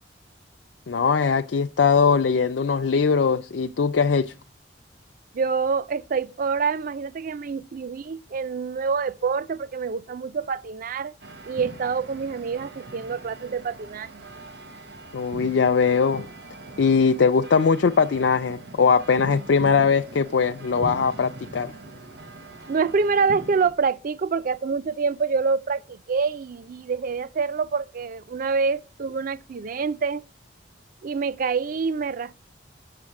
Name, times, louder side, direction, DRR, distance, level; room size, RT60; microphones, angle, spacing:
voice 1, 0.9-4.3 15.1-16.3 16.8-21.7, left 5 dB, 75° left, 0.4 m, -21 dB
voice 2, 5.3-11.1 11.5-14.2 22.7-30.2 31.0-32.3, right 5 dB, 50° right, 0.4 m, -26 dB
sound 1, 11.2-23.7, right 1 dB, 65° right, 1.2 m, -41 dB
7.6 x 6.3 x 5.9 m
head